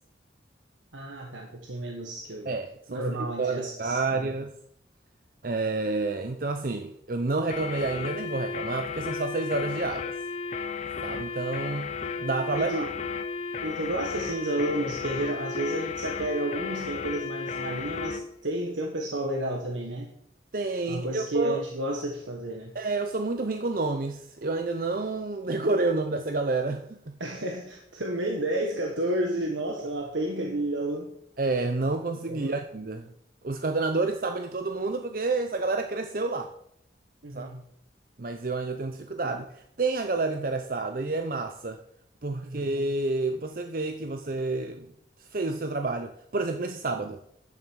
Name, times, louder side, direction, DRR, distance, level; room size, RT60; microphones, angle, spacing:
voice 1, 0.9-2.5 2.9-4.4 12.6-12.9 13.6-20.1 20.9-22.7 25.9-26.0 27.2-31.1 32.2-32.6 37.2-37.6 42.4-42.7, right 1 dB, 90° right, 1 dB, 1.4 m, -31 dB
voice 2, 2.5-3.0 3.4-4.5 5.4-10.1 11.0-11.9 12.2-12.9 20.5-21.6 22.8-27.2 31.4-33.1 33.4-36.5 37.3-37.5 38.2-39.5 39.8-41.8 42.2-44.9 45.2-47.2, right 3 dB, 50° right, 6 dB, 0.6 m, -29 dB
sound 1, 7.5-18.3, left 5 dB, 35° left, 0.7 m, -34 dB
10.0 x 7.3 x 6.2 m, 0.71 s
head